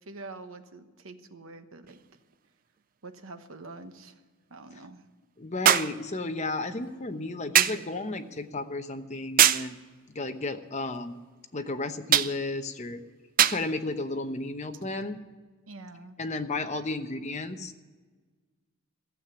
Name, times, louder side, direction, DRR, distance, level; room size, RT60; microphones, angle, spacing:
voice 1, 0.1-2.0 3.0-4.2 4.5-5.0 15.7-16.2, right 3 dB, 70° right, 8 dB, 1.1 m, -45 dB
sound 1, 1.9-2.0 5.7-6.0 7.6-7.9 9.4-9.7 12.1-12.4 13.4-13.7 14.7-14.9, right 10 dB, 40° right, 0.4 m, -21 dB
voice 2, 5.4-9.8 10.1-11.2 11.5-13.0 13.5-15.2 16.2-17.8, left 2 dB, 35° left, 7 dB, 0.9 m, -33 dB
15.0 x 7.6 x 9.6 m, 1.4 s
head